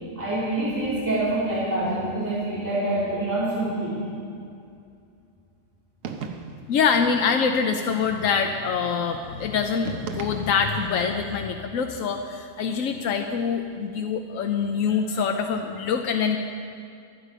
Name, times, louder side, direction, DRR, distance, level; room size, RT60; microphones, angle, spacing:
voice 1, 0.1-4.0, right 1 dB, 15° right, -9 dB, 3.2 m, -26 dB
sound 1, 6.0-6.8 9.8-10.9, right 5 dB, 85° right, 1.3 m, -36 dB
voice 2, 6.7-16.4, left 6 dB, 90° left, 4 dB, 1.1 m, -25 dB
24.0 x 8.4 x 4.9 m, 2.4 s
omnidirectional pair, 1.3 m